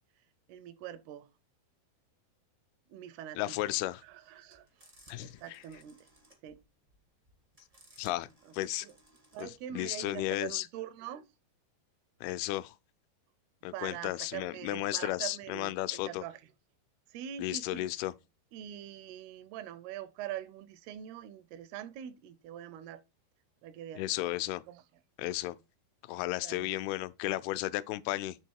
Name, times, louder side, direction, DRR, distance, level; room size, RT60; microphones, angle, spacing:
voice 1, 0.5-1.3 2.9-3.8 4.0-4.7 5.2-6.0 6.4-6.6 8.4-8.5 8.8-9.0 9.3-11.3 13.7-16.5 17.1-17.9 18.5-23.0 23.6-24.1 24.7-24.8 26.4-26.7, right 11 dB, 80° right, 2.7 m, -43 dB
voice 2, 3.4-4.0 5.1-5.6 8.0-8.3 8.5-8.9 9.4-10.7 12.2-12.8 13.6-16.2 17.4-18.1 24.0-24.6 25.2-25.6 26.1-28.4, left 16 dB, 85° left, 2.4 m, -34 dB
sound 1, 3.9-9.6, right 1 dB, 35° right, 0.5 m, -62 dB
8.6 x 3.5 x 4.6 m
omnidirectional pair, 4.5 m